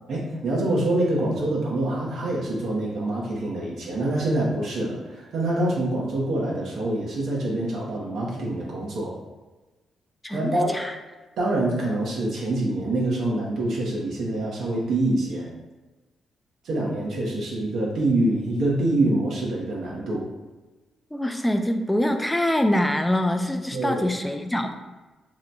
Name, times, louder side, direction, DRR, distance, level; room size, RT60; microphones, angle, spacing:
voice 1, 0.1-9.1 10.3-10.8 11.4-15.5 16.6-20.2 23.7-24.0, right 1 dB, 75° right, -4 dB, 0.7 m, -25 dB
voice 2, 10.2-11.0 21.1-24.7, left 1 dB, 5° left, 6 dB, 0.3 m, -24 dB
2.8 x 2.2 x 3.9 m, 1.2 s
cardioid pair, 75°, 0 cm